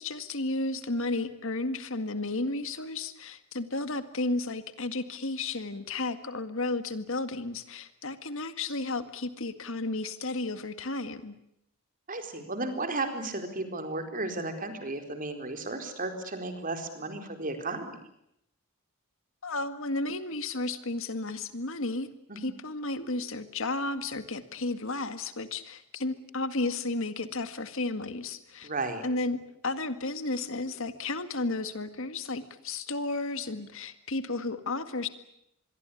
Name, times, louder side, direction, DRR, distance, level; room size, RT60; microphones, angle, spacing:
voice 1, 0.0-11.3 19.4-22.1 22.4-28.7 29.0-35.1, left 2 dB, 65° left, 11 dB, 1.9 m, -33 dB
voice 2, 12.1-18.0 22.3-22.5 28.6-29.0, right 2 dB, 40° right, 7 dB, 4.3 m, -34 dB
26.5 x 22.0 x 8.5 m, 0.77 s
head